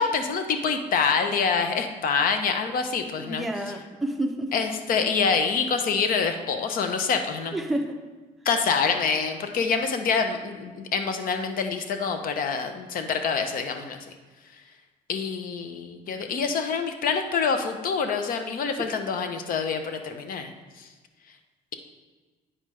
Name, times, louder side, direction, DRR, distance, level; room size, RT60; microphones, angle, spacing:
voice 1, 0.0-3.4 4.5-7.5 8.4-14.1 15.1-20.5 20.8-20.9, left 5 dB, 55° left, 7 dB, 0.7 m, -26 dB
voice 2, 3.2-4.5 7.5-8.0, right 1 dB, ahead, 2 dB, 0.7 m, -29 dB
8.8 x 5.1 x 3.2 m, 1.3 s
cardioid pair, 110°, 17 cm